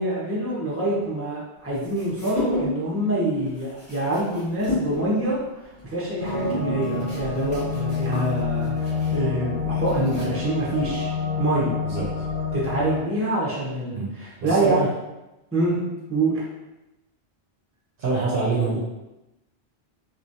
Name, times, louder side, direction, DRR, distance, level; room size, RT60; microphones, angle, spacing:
voice 1, 0.0-5.4 5.8-11.1 11.4-11.7 12.5-14.8 15.5-15.8 16.1-16.3, right 2 dB, 15° right, -7 dB, 0.9 m, -25 dB
sound 1, 1.7-3.0 3.3-10.6, left 2 dB, 30° left, 1.2 m, -33 dB
sound 2, 6.2-13.0, left 5 dB, 50° left, 0.9 m, -28 dB
voice 2, 11.8-12.3 13.9-14.1 14.4-14.9 18.0-18.8, right 3 dB, 60° right, -5 dB, 0.8 m, -25 dB
3.0 x 3.0 x 2.7 m, 0.98 s
omnidirectional pair, 1.1 m